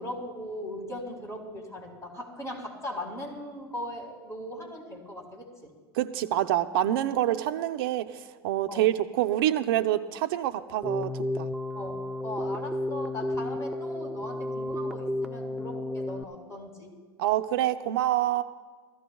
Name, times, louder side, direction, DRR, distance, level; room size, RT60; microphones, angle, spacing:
voice 1, 0.0-5.7 8.7-8.8 11.7-11.9 12.2-16.9, left 1 dB, 20° left, 0 dB, 4.4 m, -39 dB
voice 2, 5.9-11.5 17.2-18.4, right 13 dB, 65° right, 8 dB, 0.8 m, -27 dB
Keyboard (musical), 10.8-16.2, left 1 dB, ahead, 0.7 m, -32 dB
22.0 x 14.5 x 2.3 m, 1.5 s
hypercardioid pair, 95°, 13 cm